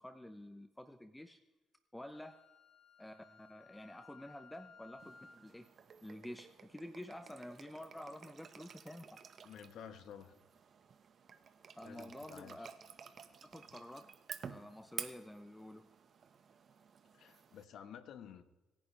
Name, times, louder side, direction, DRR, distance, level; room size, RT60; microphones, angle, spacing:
voice 1, 0.0-1.4 1.9-2.4 3.0-5.7 6.0-9.2 11.7-12.7 13.4-14.1 14.4-15.9, left 1 dB, 10° left, 9 dB, 0.8 m, -50 dB
Wind instrument woodwind instrument, 2.1-5.5, left 5 dB, 55° left, 2.6 m, -60 dB
sound 1, 5.0-17.6, right 6 dB, 55° right, 1.3 m, -52 dB
voice 2, 9.4-10.3 11.8-12.7 17.1-18.4, left 8 dB, 75° left, 10 dB, 1.3 m, -52 dB
26.0 x 10.5 x 3.4 m, 1.2 s
cardioid pair, 90°, 0 cm